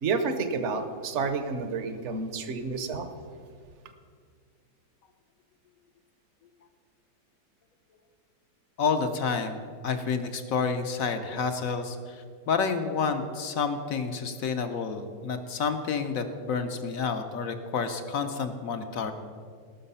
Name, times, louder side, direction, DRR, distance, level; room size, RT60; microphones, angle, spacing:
voice 1, 0.0-3.1, right 4 dB, 50° right, 9 dB, 0.9 m, -30 dB
voice 2, 8.8-19.1, left 5 dB, 60° left, 7 dB, 0.9 m, -29 dB
18.5 x 6.3 x 5.5 m, 2.1 s
omnidirectional pair, 2.1 m